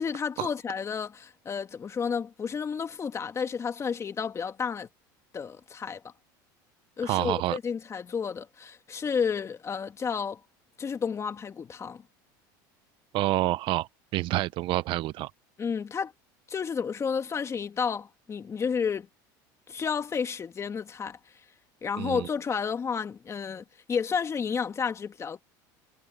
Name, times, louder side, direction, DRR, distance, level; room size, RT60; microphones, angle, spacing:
voice 1, 0.0-4.9 5.3-6.1 7.0-10.4 10.8-12.0 15.6-16.1 16.5-19.1 19.7-21.2 21.8-25.4, left 6 dB, 25° left, 2.0 m, -31 dB
voice 2, 7.0-7.6 13.1-15.3 22.0-22.3, right 17 dB, 55° right, 0.7 m, -28 dB
supercardioid pair, 105°, 10 cm